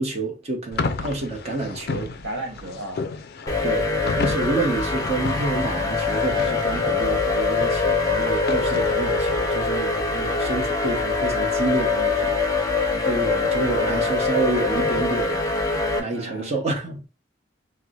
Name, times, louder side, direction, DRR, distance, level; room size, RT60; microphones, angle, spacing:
voice 1, 0.0-2.1 3.6-3.9 4.1-15.4 16.0-17.1, right 3 dB, 35° right, 0.8 m, -28 dB
sound 1, 0.7-9.8, left 4 dB, 55° left, 0.4 m, -33 dB
voice 2, 2.2-3.0 14.8-15.1 16.1-16.6, right 1 dB, 65° right, 1.2 m, -34 dB
sound 2, 3.5-16.0, left 3 dB, 20° left, 0.7 m, -23 dB
4.4 x 2.0 x 2.3 m
head